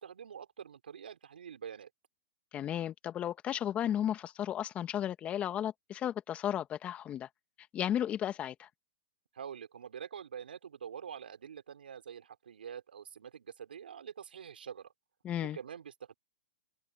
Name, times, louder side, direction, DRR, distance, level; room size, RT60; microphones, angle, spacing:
voice 1, 0.0-1.9 9.3-14.9 15.4-16.1, right 8 dB, 80° right, 4.3 m, -46 dB
voice 2, 2.5-7.3 7.7-8.7 15.2-15.6, left 10 dB, 25° left, 1.7 m, -34 dB
open air
hypercardioid pair, 125°, 5 cm